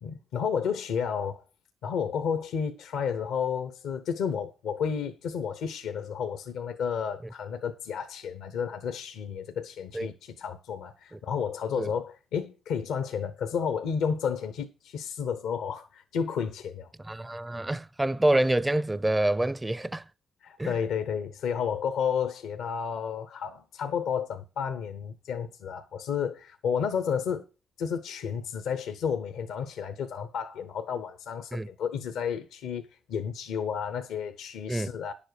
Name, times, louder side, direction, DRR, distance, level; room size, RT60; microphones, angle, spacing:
voice 1, 0.0-1.4 1.8-16.9 20.4-27.5 27.8-35.1, left 7 dB, 90° left, 0.8 m, -31 dB
voice 2, 17.0-20.0 20.6-20.7 31.5-31.7 34.7-34.9, right 1 dB, 20° right, 0.5 m, -27 dB
10.0 x 7.3 x 6.5 m
supercardioid pair, 55°, 0 cm